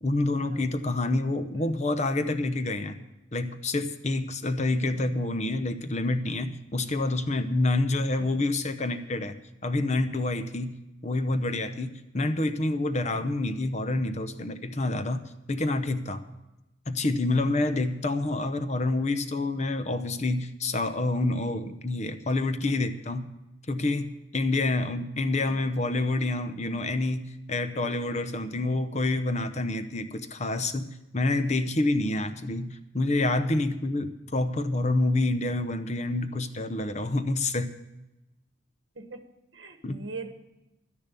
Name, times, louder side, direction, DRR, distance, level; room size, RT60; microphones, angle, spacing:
voice 1, 0.0-3.0 3.3-9.3 9.6-10.8 11.0-16.2 16.9-23.3 23.7-37.7 39.8-40.0, left 2 dB, 35° left, 9 dB, 0.8 m, -28 dB
voice 2, 8.2-8.5 25.5-25.7 26.7-26.8 38.9-40.3, right 3 dB, 70° right, 7 dB, 1.3 m, -43 dB
11.5 x 10.5 x 6.9 m, 0.95 s
head